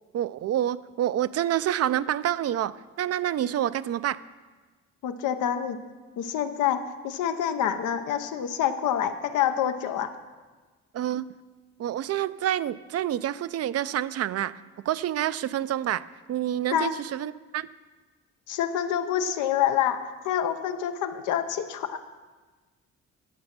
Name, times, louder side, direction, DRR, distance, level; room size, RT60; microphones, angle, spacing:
voice 1, 0.1-4.2 10.9-11.3 11.8-14.5 14.9-16.0 16.3-17.7, right 11 dB, 55° right, 16 dB, 0.4 m, -27 dB
voice 2, 5.0-5.8 6.2-10.1 16.7-16.9 18.5-22.0, left 9 dB, 85° left, 8 dB, 0.8 m, -27 dB
10.0 x 7.8 x 5.9 m, 1.3 s
cardioid pair, 90°, 30 cm